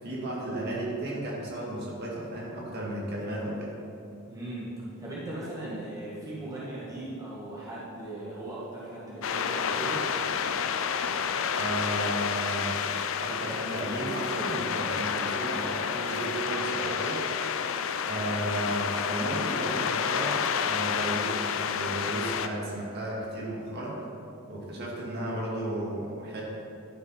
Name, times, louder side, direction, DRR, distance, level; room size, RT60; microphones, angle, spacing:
voice 1, 0.0-3.8 11.6-12.8 13.2-17.2 18.0-24.0 24.5-26.4, right 1 dB, 45° right, -4 dB, 2.0 m, -34 dB
voice 2, 4.3-10.1, right 1 dB, 15° right, -8 dB, 1.5 m, -38 dB
sound 1, 9.2-22.5, left 7 dB, 60° left, 0.4 m, -30 dB
11.5 x 5.5 x 5.6 m, 2.7 s
head